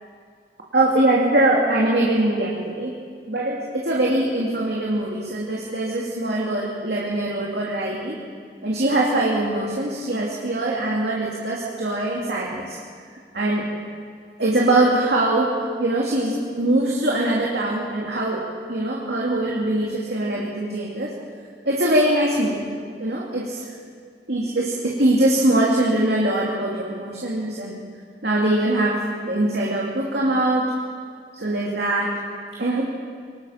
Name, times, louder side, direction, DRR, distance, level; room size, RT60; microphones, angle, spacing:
voice 1, 0.7-3.0 3.3-8.2 8.6-12.8 13.3-13.7 14.4-15.5 15.8-21.2 21.6-22.7 23.0-23.6 24.3-27.8 28.2-30.7 31.3-32.2 32.5-32.9, right 1 dB, 65° right, -4 dB, 2.8 m, -22 dB
24.0 x 21.0 x 5.9 m, 2.1 s
head